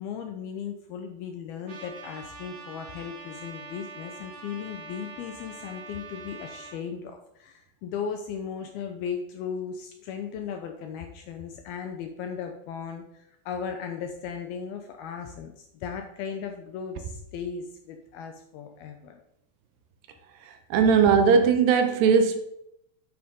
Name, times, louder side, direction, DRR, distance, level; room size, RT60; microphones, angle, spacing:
voice 1, 0.0-19.2, left 7 dB, 75° left, 5 dB, 2.3 m, -36 dB
Trumpet, 1.7-6.8, right 3 dB, 45° right, 1.7 m, -44 dB
voice 2, 20.5-22.4, right 6 dB, 75° right, 7 dB, 2.9 m, -19 dB
11.0 x 9.2 x 3.7 m, 0.76 s
omnidirectional pair, 5.2 m